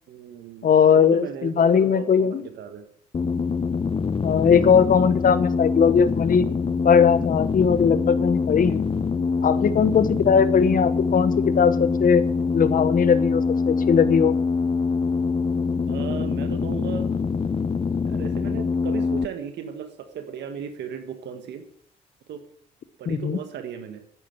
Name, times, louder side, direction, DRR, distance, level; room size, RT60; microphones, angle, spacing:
voice 1, 0.1-2.8 7.9-8.4 15.9-17.1 18.1-21.6 22.3-22.4 23.0-24.0, right 8 dB, 65° right, 7 dB, 1.7 m, -36 dB
voice 2, 0.6-2.4 4.2-6.5 6.8-8.8 9.4-12.2 12.5-14.4 23.1-23.4, left 7 dB, 50° left, 14 dB, 1.1 m, -19 dB
sound 1, 3.1-19.3, left 4 dB, 30° left, 0.7 m, -24 dB
10.0 x 9.3 x 7.7 m, 0.70 s
hypercardioid pair, 55°, 19 cm